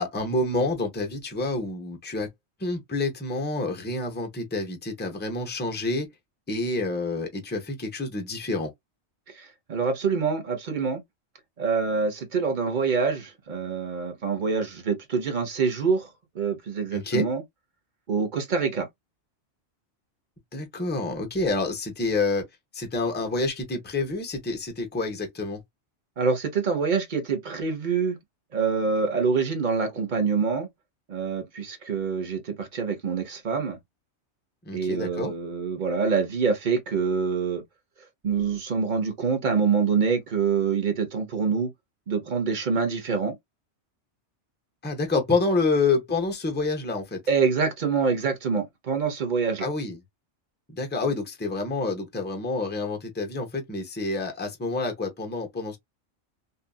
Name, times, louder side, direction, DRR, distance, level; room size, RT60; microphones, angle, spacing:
voice 1, 0.0-2.3 2.6-6.1 6.5-8.7 16.9-17.3 20.5-22.4 22.7-25.6 34.7-35.3 44.8-47.2 49.6-50.0 50.7-55.8, left 3 dB, 10° left, 0.5 m, -28 dB
voice 2, 9.4-11.0 11.6-16.1 16.3-17.4 18.1-18.9 26.2-28.2 28.5-30.7 31.1-33.8 34.7-37.6 38.2-41.7 42.1-43.4 47.3-49.7, right 5 dB, 45° right, 1.0 m, -25 dB
2.7 x 2.5 x 2.3 m
omnidirectional pair, 1.2 m